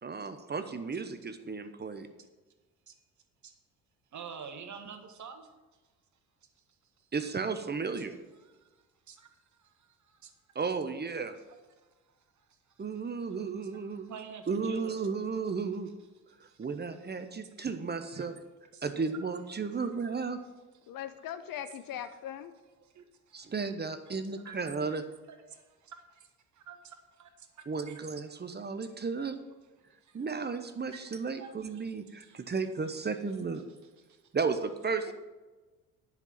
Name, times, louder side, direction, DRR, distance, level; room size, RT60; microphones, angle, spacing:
voice 1, 0.0-2.1 7.1-8.2 10.5-11.4 12.8-14.1 14.5-15.9 16.4-18.3 18.8-20.4 23.3-25.0 27.7-29.4 30.1-33.6 34.3-35.1, right 4 dB, 25° right, 0.9 m, -34 dB
voice 2, 4.1-5.5 7.7-7.9 8.4-8.7 9.1-9.3 9.6-10.3 12.1-12.8 13.9-15.0 16.3-16.7 17.4-17.6 18.1-18.2 18.7-18.8 19.6-19.9 22.0-22.1 22.8-23.5 24.4-24.5 24.9-25.0 25.3-28.0 28.4-28.5 29.9-30.2 30.9-31.1 31.4-32.4 34.1-34.3, right 7 dB, 40° right, 1.5 m, -49 dB
voice 3, 20.9-22.5 35.0-35.1, left 10 dB, 50° left, 0.9 m, -40 dB
10.5 x 6.0 x 7.3 m
figure-of-eight pair, 50°, 43 cm